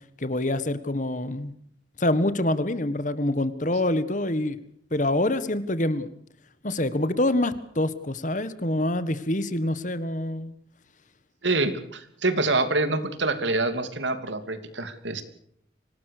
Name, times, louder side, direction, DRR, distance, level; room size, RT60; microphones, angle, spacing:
voice 1, 0.2-1.5 2.0-4.6 4.9-6.1 6.6-10.5, left 1 dB, 40° left, 14 dB, 1.6 m, -26 dB
voice 2, 11.4-15.2, right 2 dB, 80° right, 10 dB, 3.0 m, -26 dB
25.5 x 19.0 x 6.8 m, 0.68 s
head